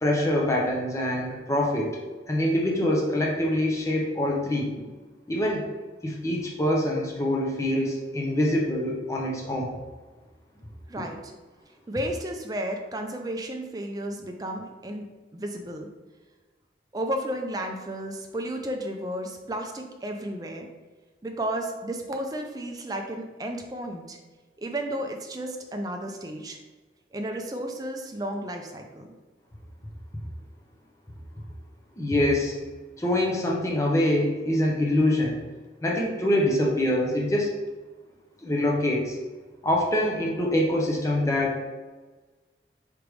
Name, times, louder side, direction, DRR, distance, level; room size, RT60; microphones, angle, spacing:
voice 1, 0.0-2.0 2.3-4.7 5.3-5.6 6.0-9.8 31.9-32.6 33.0-35.4 35.8-37.5 38.4-39.2 39.6-41.6, left 1 dB, 15° left, -1 dB, 0.6 m, -25 dB
voice 2, 10.9-11.3 11.9-15.1 15.3-15.9 16.9-20.7 21.2-24.2 24.6-26.6 27.1-29.1, right 1 dB, 20° right, 3 dB, 0.4 m, -33 dB
5.0 x 3.3 x 3.1 m, 1.3 s
head